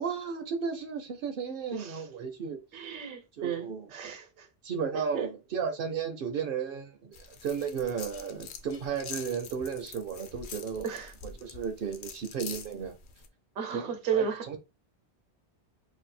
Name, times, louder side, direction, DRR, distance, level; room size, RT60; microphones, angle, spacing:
voice 1, 0.0-2.6 3.4-3.9 4.6-10.9 11.4-13.0 13.7-14.6, right 6 dB, 60° right, 0.6 m, -34 dB
voice 2, 1.7-2.1 2.7-4.5 5.1-5.3 10.8-11.1 13.6-14.4, right 7 dB, 80° right, 1.0 m, -33 dB
sound 1, 7.1-13.3, left 6 dB, 60° left, 0.6 m, -45 dB
2.7 x 2.1 x 4.0 m
omnidirectional pair, 1.1 m